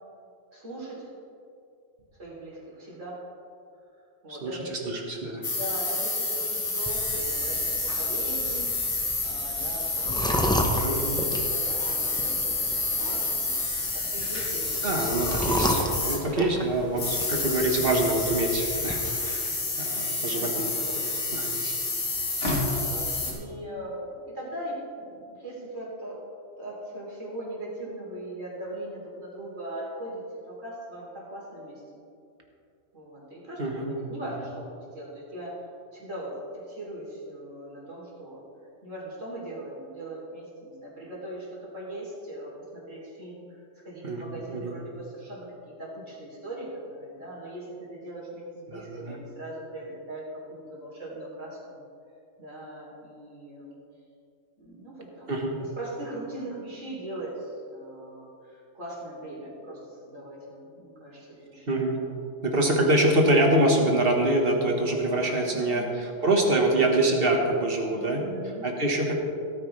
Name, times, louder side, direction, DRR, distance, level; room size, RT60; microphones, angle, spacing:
voice 1, 0.5-1.1 2.2-3.2 4.2-4.9 5.5-15.2 15.6-16.3 20.2-20.8 22.2-22.4 22.7-26.2 26.6-30.2 30.5-31.8 32.9-35.6 35.9-38.4 38.8-51.8 52.4-53.7 54.6-55.3 55.6-61.7 62.0-62.2 65.5-66.1 67.9-68.6, right 1 dB, 75° right, -5 dB, 3.8 m, -40 dB
voice 2, 4.9-5.4 10.8-11.2 14.8-19.5 19.8-21.7 33.6-33.9 44.0-44.7 48.7-49.2 55.3-55.5 61.7-62.0 62.4-68.2 68.6-69.1, right 1 dB, 45° right, 1 dB, 1.7 m, -25 dB
sound 1, 5.4-16.5 16.9-23.3, left 3 dB, 70° left, 2.2 m, -29 dB
sound 2, 6.9-18.9, equal, 5° left, 0.8 m, -33 dB
17.0 x 9.4 x 3.3 m, 2.5 s
omnidirectional pair, 1.3 m